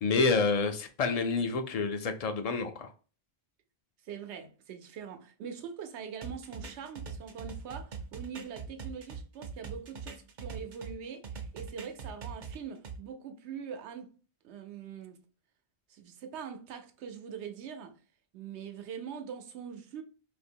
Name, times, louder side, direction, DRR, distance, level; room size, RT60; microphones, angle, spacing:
voice 1, 0.0-2.9, left 4 dB, 55° left, 0.4 m, -28 dB
voice 2, 4.0-14.1 14.4-15.2 15.9-18.0 18.3-20.0, right 7 dB, 85° right, 0.9 m, -43 dB
sound 1, 6.2-10.9 11.2-13.0, right 5 dB, 50° right, 0.7 m, -42 dB
2.8 x 2.5 x 4.3 m
omnidirectional pair, 1.1 m